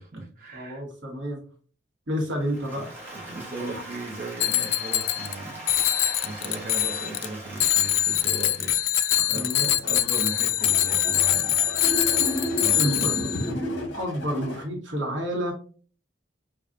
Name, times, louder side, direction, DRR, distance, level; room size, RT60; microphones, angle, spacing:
voice 1, 0.0-0.8 2.7-8.8 9.3-11.6 12.6-13.2, right 2 dB, 45° right, -2 dB, 0.7 m, -37 dB
voice 2, 0.5-1.4 2.1-2.9 9.3-9.7 12.7-13.1 13.9-15.5, equal, 80° right, 0 dB, 1.2 m, -29 dB
Applause, 2.4-9.6, right 1 dB, 10° right, 1.0 m, -42 dB
Bicycle bell, 4.4-5.4 5.7-7.3 7.6-13.5, left 13 dB, 85° left, 0.3 m, -23 dB
sound 1, 9.4-14.6, equal, 65° left, 1.3 m, -32 dB
4.9 x 2.3 x 2.5 m, 0.41 s
head